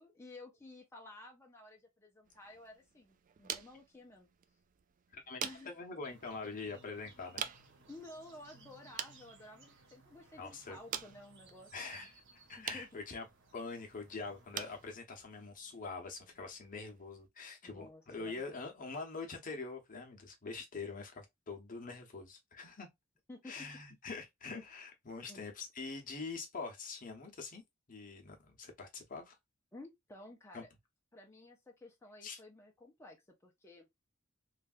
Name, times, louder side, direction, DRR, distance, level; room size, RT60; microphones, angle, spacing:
voice 1, 0.0-4.3 5.4-5.7 7.9-12.1 12.6-12.9 17.6-18.5 23.3-23.5 25.3-25.4 29.7-30.7 31.1-33.9, left 2 dB, 15° left, 0.6 m, -53 dB
sound 1, 2.2-17.3, right 8 dB, 40° right, 0.4 m, -48 dB
voice 2, 5.1-7.5 10.4-10.8 11.7-12.1 12.5-13.2 13.5-22.9 23.4-27.6 27.9-29.4 30.5-30.6 32.2-32.4, left 4 dB, 40° left, 0.8 m, -44 dB
sound 2, 6.0-15.0, right 3 dB, 60° right, 0.9 m, -62 dB
3.2 x 2.4 x 2.5 m
head